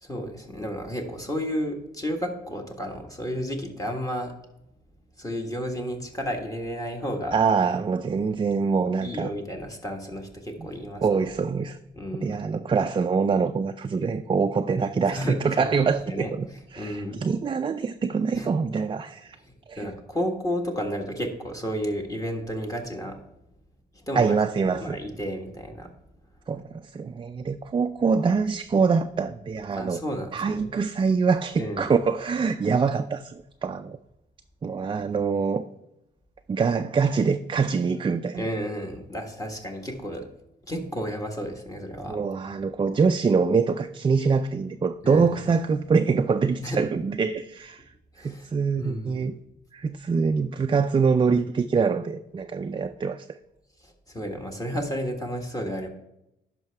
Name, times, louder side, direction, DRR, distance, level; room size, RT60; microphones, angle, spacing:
voice 1, 0.0-4.3 5.2-7.4 9.0-11.0 11.9-12.4 15.1-16.3 16.8-17.3 18.3-18.5 19.4-23.2 24.1-24.4 24.7-25.9 29.7-30.7 31.6-31.9 38.4-40.3 40.7-42.2 45.0-45.3 46.6-47.0 48.1-48.5 48.8-49.3 53.8-55.9, equal, 15° left, 1.4 m, -32 dB
voice 2, 7.3-9.3 11.0-11.8 12.2-16.5 16.7-19.4 19.7-19.9 24.2-25.0 26.5-30.0 30.3-34.0 34.6-35.7 36.5-38.5 42.1-47.8 48.2-49.3 49.7-53.3, right 5 dB, 25° right, 0.4 m, -24 dB
10.5 x 5.7 x 3.4 m
cardioid pair, 90°, 20 cm